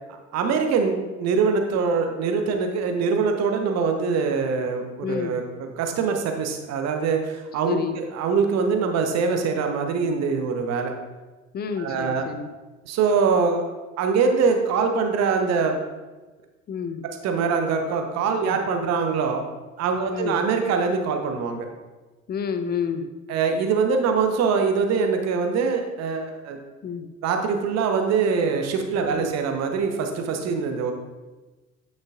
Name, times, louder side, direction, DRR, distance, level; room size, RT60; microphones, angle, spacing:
voice 1, 0.3-10.9 11.8-12.3 12.9-13.7 14.0-15.8 17.2-19.4 19.8-21.7 23.3-26.6 27.2-30.9, right 5 dB, 40° right, 5 dB, 0.9 m, -23 dB
voice 2, 5.0-5.3 7.6-8.0 11.5-12.5 16.7-17.0 18.4-18.6 20.1-20.4 22.3-23.1 26.8-27.1 29.1-29.3, left 6 dB, 25° left, 9 dB, 0.6 m, -29 dB
9.6 x 6.5 x 2.4 m, 1.2 s
figure-of-eight pair, 60°, 40 cm